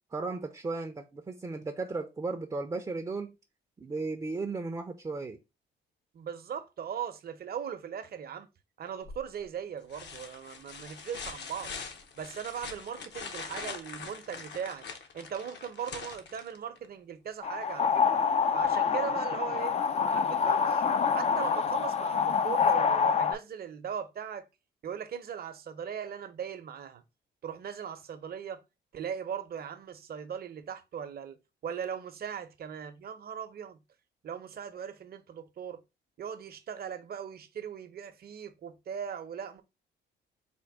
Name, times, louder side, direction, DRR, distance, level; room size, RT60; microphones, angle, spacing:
voice 1, 0.1-3.3 3.8-5.4, right 3 dB, 20° right, 0.5 m, -35 dB
voice 2, 6.1-8.5 8.8-11.7 12.2-14.9 15.1-18.2 18.5-19.7 20.0-20.9 21.1-24.5 24.8-27.0 27.4-28.6 28.9-33.8 34.2-35.8 36.2-39.6, right 8 dB, 50° right, 0.7 m, -39 dB
sound 1, 9.0-9.4 9.9-16.9 18.6-18.7, left 5 dB, 60° left, 0.9 m, -43 dB
sound 2, 17.4-23.3, left 6 dB, 35° left, 0.4 m, -26 dB
4.4 x 2.1 x 4.7 m
cardioid pair, 90°, 20 cm